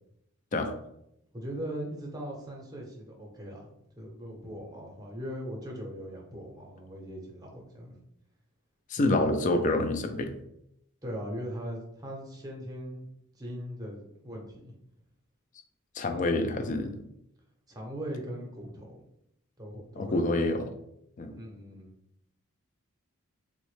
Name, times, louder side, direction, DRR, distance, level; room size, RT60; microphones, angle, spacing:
voice 1, 1.3-3.7 4.0-7.9 9.0-9.2 11.0-13.1 13.3-14.7 17.7-19.0 19.6-20.4 21.4-21.9, equal, 15° right, 0 dB, 0.7 m, -40 dB
voice 2, 8.9-10.3 15.9-16.9 20.0-20.7 21.2-21.4, left 2 dB, 35° left, 6 dB, 0.3 m, -27 dB
3.6 x 2.1 x 3.1 m, 0.78 s
head